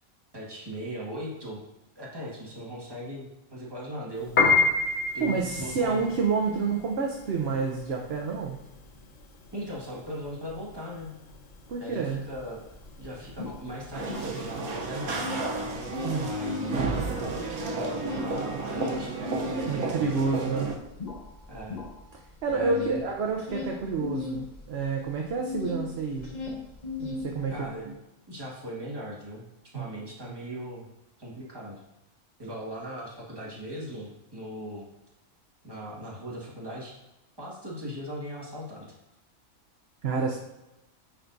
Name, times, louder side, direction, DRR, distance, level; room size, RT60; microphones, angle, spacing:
voice 1, 0.3-1.6 2.0-4.7 5.1-6.0 9.5-11.1 11.8-12.6 13.0-15.4 16.2-17.1 17.7-20.5 21.5-21.8 22.5-23.0 27.5-28.0 28.3-29.4 29.7-30.9 31.2-31.8 32.4-34.9 35.6-37.0 37.4-38.9, equal, 15° right, -5 dB, 1.7 m, -38 dB
Piano, 4.2-14.6, left 4 dB, 65° left, 1.3 m, -29 dB
voice 2, 5.2-8.6 11.7-12.2 16.0-16.3 19.7-20.7 22.4-26.3 27.0-27.5 29.7-30.4 40.0-40.4, right 4 dB, 55° right, 0 dB, 0.9 m, -29 dB
sound 1, 12.3-12.4 12.7-14.7 15.0-16.8 17.2-25.9 26.1-27.7, left 3 dB, 35° left, 1.1 m, -37 dB
sound 2, 13.9-20.8, right 3 dB, 80° right, 1.3 m, -32 dB
10.5 x 4.5 x 2.6 m, 0.97 s
omnidirectional pair, 1.5 m